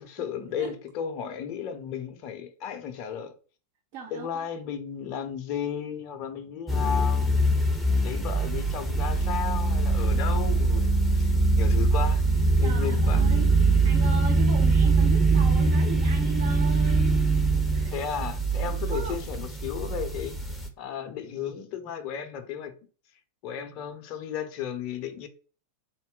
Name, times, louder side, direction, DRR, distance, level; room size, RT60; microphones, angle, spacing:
voice 1, 0.0-3.3 4.1-7.3 7.8-12.2 12.6-13.2 17.9-20.4 20.8-22.7 23.4-25.3, left 8 dB, 40° left, 0.7 m, -34 dB
voice 2, 3.9-4.4 12.6-13.5 13.8-17.4 17.7-18.1 18.6-19.2, right 6 dB, 50° right, 0.6 m, -38 dB
sound 1, 6.7-20.7, right 2 dB, ahead, 0.7 m, -23 dB
3.8 x 2.1 x 3.7 m
figure-of-eight pair, 90°, 0 cm